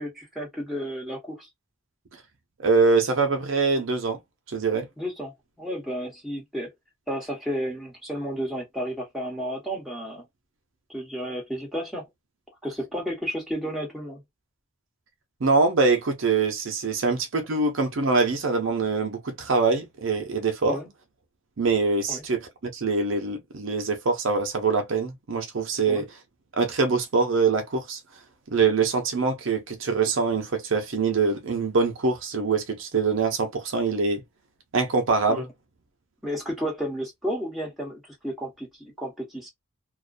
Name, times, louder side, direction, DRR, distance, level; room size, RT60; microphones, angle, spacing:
voice 1, 0.0-1.5 5.0-5.3 5.6-6.7 7.1-10.2 10.9-12.1 12.6-14.2 20.7-20.9 22.1-22.2 25.9-26.0 35.3-35.4 36.2-39.5, equal, ahead, 1.0 m, -32 dB
voice 2, 2.6-4.2 4.5-4.9 15.4-20.8 21.6-26.1 26.6-28.0 28.5-34.2 34.7-35.5, right 4 dB, 60° right, 0.6 m, -24 dB
2.4 x 2.1 x 2.4 m
head